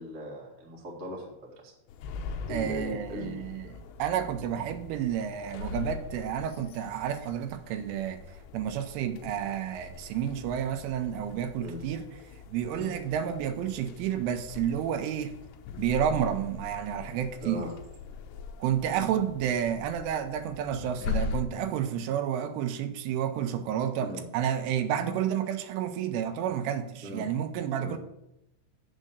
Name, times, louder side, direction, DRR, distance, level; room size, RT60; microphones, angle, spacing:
voice 1, 0.0-1.7 2.5-3.5 11.6-11.8 12.7-12.9 17.4-17.7 24.0-24.2 27.0-27.3 27.8-28.0, left 1 dB, 60° right, 0.7 m, -39 dB
sound 1, 1.9-21.4, left 5 dB, 80° left, 2.6 m, -41 dB
voice 2, 2.5-3.7 4.0-12.1 12.5-15.3 15.8-17.6 18.6-28.0, right 9 dB, 85° right, 3.3 m, -30 dB
7.4 x 6.5 x 7.8 m
omnidirectional pair, 5.5 m